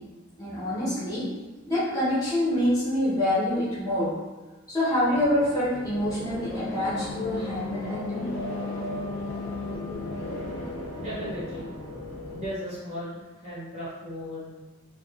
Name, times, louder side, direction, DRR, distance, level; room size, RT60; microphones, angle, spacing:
voice 1, 0.4-1.3 1.7-4.2 4.7-8.3, left 1 dB, 15° left, -10 dB, 0.8 m, -26 dB
sound 1, 5.1-12.5, left 2 dB, 55° left, 0.4 m, -35 dB
voice 2, 10.9-11.7 12.3-14.5, equal, 30° right, -9 dB, 0.7 m, -36 dB
2.5 x 2.3 x 2.3 m, 1.2 s
head